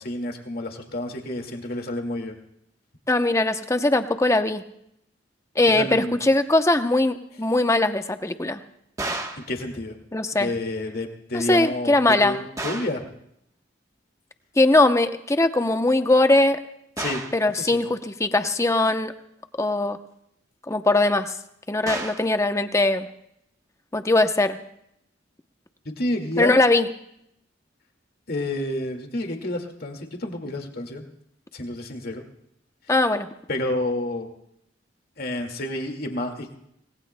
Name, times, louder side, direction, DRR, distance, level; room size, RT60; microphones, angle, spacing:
voice 1, 0.0-2.4 5.7-6.2 9.4-10.0 10.4-13.0 17.0-17.2 17.5-17.8 25.9-26.5 28.3-31.0 31.5-32.2 33.5-34.3 35.2-36.7, left 1 dB, 55° left, 4 dB, 2.0 m, -29 dB
voice 2, 3.1-4.6 5.6-8.6 10.1-10.5 11.3-12.4 14.6-16.6 17.3-19.1 19.6-20.0 20.7-21.3 21.7-23.1 23.9-24.6 26.4-26.9 32.9-33.3, left 2 dB, 15° left, 8 dB, 0.7 m, -20 dB
sound 1, 9.0-9.5 12.6-13.0 17.0-17.4 21.9-22.3, right 2 dB, 20° right, 1.1 m, -31 dB
26.5 x 19.0 x 2.2 m, 0.75 s
head